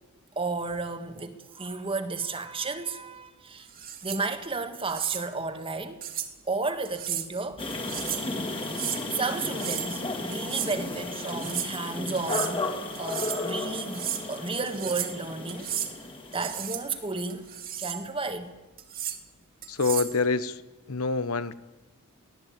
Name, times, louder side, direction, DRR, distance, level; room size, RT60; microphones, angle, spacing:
voice 1, 0.3-3.7 4.0-6.0 6.4-7.7 9.1-12.6 13.0-15.7 16.3-17.5 17.8-18.5, right 3 dB, 25° right, 1.7 m, -32 dB
sound 1, 3.7-4.2 4.9-5.2 6.0-6.3 6.9-7.3 7.7-8.3 8.6-9.0 9.5-9.9 10.3-10.8 11.3-11.7 12.2-12.5 13.0-13.4 13.8-14.2 14.7-15.2 15.5-15.9 16.3-16.8 17.3-18.0 18.8-19.2 19.6-20.2, right 10 dB, 40° right, 2.1 m, -34 dB
sound 2, 7.6-17.3, left 2 dB, 25° left, 2.5 m, -34 dB
voice 2, 19.7-20.6 20.9-21.5, left 4 dB, 70° left, 1.0 m, -26 dB
23.5 x 17.0 x 8.7 m
head